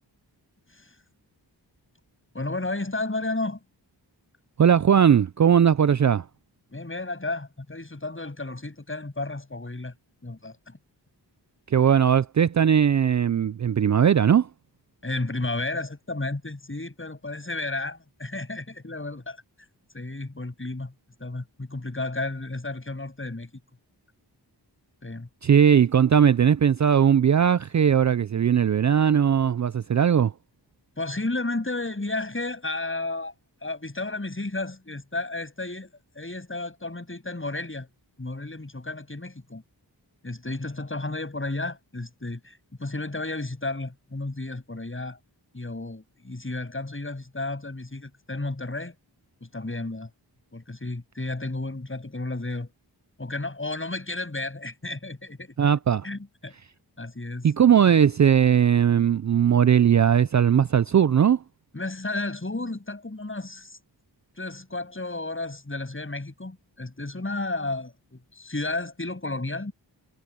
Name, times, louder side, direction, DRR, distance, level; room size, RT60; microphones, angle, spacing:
voice 1, 2.3-3.6 6.7-9.9 10.2-10.8 15.0-19.4 19.9-20.9 21.2-23.5 25.0-25.3 31.0-33.3 33.6-37.9 38.2-39.6 40.2-45.2 45.5-48.9 49.4-50.1 50.5-52.7 53.2-55.5 56.0-56.5 57.0-57.5 61.7-63.8 64.4-69.7, left 2 dB, 30° left, 7.5 m, -32 dB
voice 2, 4.6-6.2 11.7-14.5 25.4-30.3 55.6-56.0 57.4-61.4, right 8 dB, 45° right, 0.5 m, -19 dB
wide cardioid pair, 75°, 42 cm